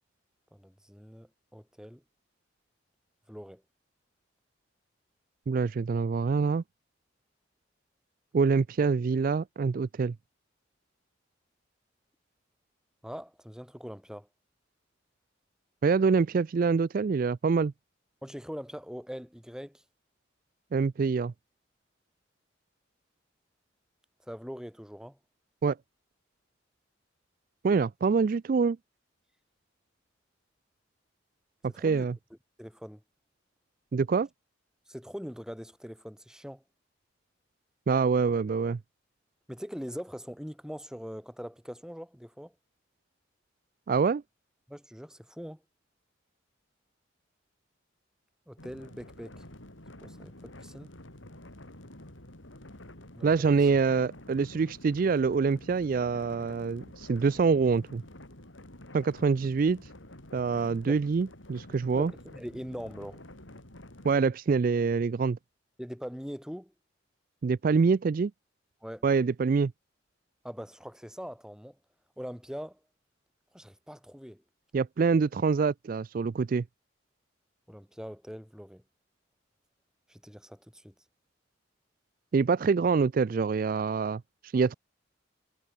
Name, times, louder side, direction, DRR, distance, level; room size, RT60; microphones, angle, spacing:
voice 1, 0.5-2.0 3.3-3.6 13.0-14.3 18.2-19.8 24.3-25.2 31.7-32.1 32.6-33.0 34.9-36.6 39.5-42.5 44.7-45.6 48.5-49.4 50.0-50.9 53.1-53.3 60.8-61.0 61.9-63.2 65.8-66.7 68.8-69.0 70.4-71.8 72.2-72.8 73.5-74.4 77.7-78.8 80.1-80.9, equal, 5° right, 6.2 m, -42 dB
voice 2, 5.5-6.6 8.3-10.1 15.8-17.7 20.7-21.3 25.6-25.8 27.6-28.8 31.6-32.2 33.9-34.3 37.9-38.8 43.9-44.2 53.2-58.0 58.9-59.8 60.3-62.1 64.0-65.4 67.4-68.3 69.0-69.7 74.7-76.6 82.3-84.7, right 5 dB, 45° right, 0.3 m, -25 dB
sound 1, 48.6-64.2, left 1 dB, 85° left, 4.8 m, -49 dB
head